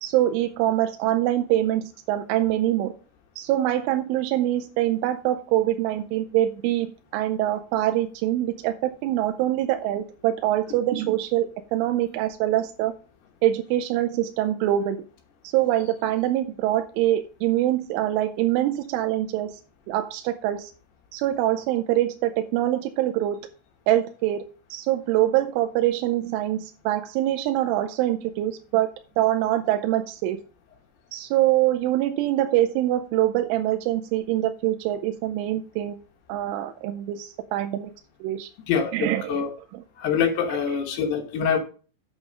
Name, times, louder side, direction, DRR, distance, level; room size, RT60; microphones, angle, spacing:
voice 1, 0.0-2.9 3.4-12.9 13.4-15.0 15.5-19.5 19.9-20.7 21.1-23.4 23.9-24.5 24.7-28.9 29.2-30.4 31.1-36.0 36.3-37.9 38.2-38.5 38.9-39.4 39.7-39.8, right 13 dB, 90° right, 6 dB, 3.1 m, -24 dB
voice 2, 38.7-39.5 40.0-41.6, left 7 dB, 70° left, 4 dB, 2.9 m, -25 dB
8.5 x 6.1 x 5.1 m, 0.37 s
omnidirectional pair, 5.6 m